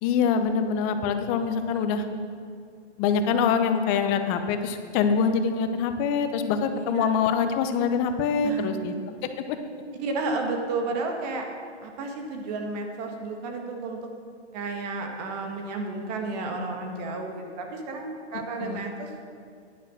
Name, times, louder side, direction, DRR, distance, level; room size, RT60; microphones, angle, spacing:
voice 1, 0.0-2.0 3.0-8.9 18.3-18.9, left 6 dB, 25° left, 8 dB, 0.7 m, -25 dB
voice 2, 6.7-7.2 8.4-8.7 10.0-11.5 11.8-14.0 14.5-19.2, right 3 dB, 35° right, 3 dB, 1.6 m, -32 dB
10.5 x 9.7 x 6.2 m, 2.2 s
hypercardioid pair, 135°, 35 cm